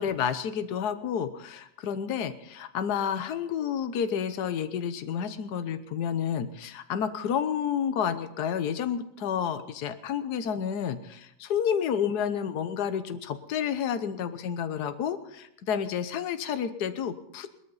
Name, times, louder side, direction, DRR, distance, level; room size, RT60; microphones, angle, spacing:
voice 1, 0.0-17.5, left 8 dB, 60° left, 11 dB, 1.4 m, -30 dB
19.5 x 13.5 x 4.0 m, 0.80 s
omnidirectional pair, 2.1 m